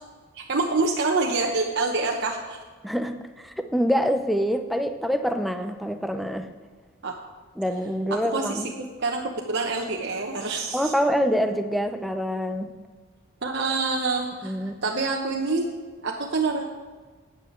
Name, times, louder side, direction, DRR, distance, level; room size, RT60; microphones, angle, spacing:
voice 1, 0.3-2.6 7.0-7.1 8.3-8.6 9.0-10.9 13.4-15.7 16.0-16.7, right 3 dB, 50° right, 0 dB, 1.0 m, -26 dB
voice 2, 2.8-6.5 7.6-8.7 10.7-12.7 14.4-14.8, equal, ahead, 7 dB, 0.6 m, -26 dB
9.6 x 9.1 x 7.9 m, 1.4 s
head